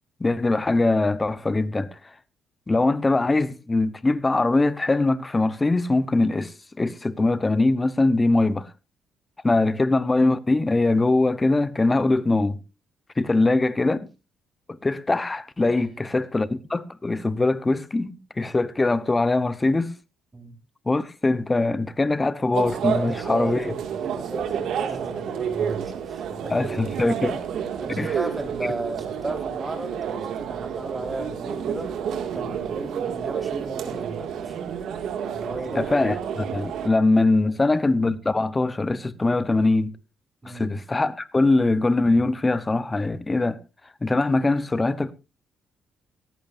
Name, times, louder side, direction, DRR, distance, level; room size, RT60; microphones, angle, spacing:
voice 1, 0.2-2.0 2.7-8.7 9.4-12.6 13.2-14.1 14.8-19.9 20.9-23.7 26.5-27.4 28.0-28.1 35.7-39.9 40.5-43.6 44.0-45.1, left 2 dB, 20° left, 0.9 m, -22 dB
sound 1, 22.5-36.9, right 8 dB, 75° right, 2.2 m, -30 dB
voice 2, 22.9-26.8 27.8-31.9 32.3-34.6 35.3-35.9 37.4-37.5 40.4-40.7, right 2 dB, 20° right, 4.5 m, -35 dB
17.5 x 14.5 x 2.6 m
cardioid pair, 90°, 0 cm